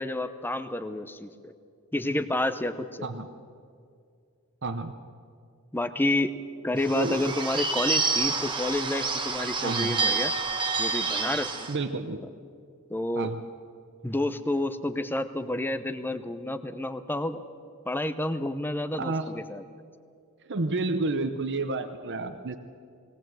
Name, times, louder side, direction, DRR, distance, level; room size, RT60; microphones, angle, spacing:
voice 1, 0.0-1.5 1.9-3.1 5.7-6.3 6.6-10.3 10.8-11.7 12.9-13.3 14.0-17.4 17.9-19.6, left 1 dB, 10° left, 10 dB, 0.8 m, -29 dB
voice 2, 4.6-5.0 6.9-7.2 9.6-10.0 11.7-12.2 13.2-13.4 19.0-19.3 20.4-22.6, right 3 dB, 55° right, 7 dB, 0.9 m, -30 dB
Bird / Bell, 6.8-11.7, right 4 dB, 20° right, 1.4 m, -28 dB
20.0 x 18.5 x 7.7 m, 2.3 s
head